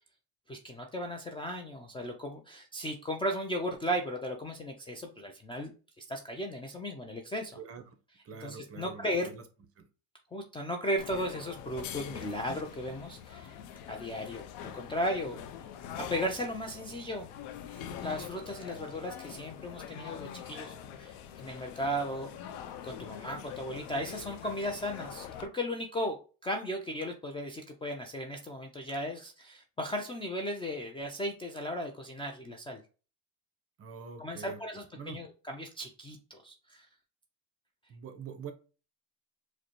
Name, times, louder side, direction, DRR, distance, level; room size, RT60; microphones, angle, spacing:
voice 1, 0.5-5.7 6.0-7.6 8.4-9.3 10.3-13.5 13.9-15.4 16.1-17.3 17.7-22.3 22.8-26.2 26.4-32.8 34.2-36.9, equal, 15° left, 3 dB, 0.4 m, -36 dB
voice 2, 7.5-8.0 8.2-9.4 9.8-9.9 18.7-18.9 33.8-35.2 37.9-38.5, right 6 dB, 35° right, 8 dB, 0.7 m, -45 dB
sound 1, 11.0-25.5, left 9 dB, 80° left, 0.6 m, -44 dB
4.9 x 2.2 x 3.0 m, 0.35 s
cardioid pair, 125°, 40 cm